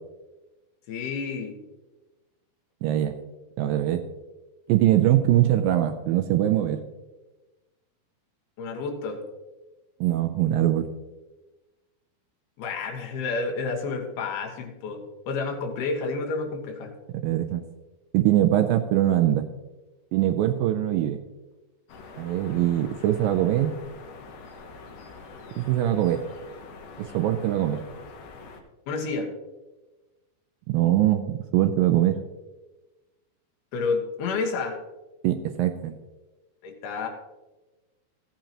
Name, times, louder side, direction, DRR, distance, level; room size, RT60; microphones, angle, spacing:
voice 1, 0.9-1.5 8.6-9.2 12.6-16.9 28.9-29.3 33.7-34.8 36.6-37.1, left 4 dB, 80° left, 3 dB, 3.2 m, -30 dB
voice 2, 2.8-3.2 3.6-4.0 4.7-6.8 10.0-10.9 17.2-17.6 18.1-19.5 20.1-21.2 22.2-23.7 25.6-26.2 27.0-27.8 30.7-32.2 35.2-35.9, right 12 dB, 85° right, 6 dB, 2.1 m, -22 dB
sound 1, 21.9-28.6, left 4 dB, 65° left, 1.9 m, -45 dB
16.0 x 8.8 x 2.9 m, 1.1 s
omnidirectional pair, 4.5 m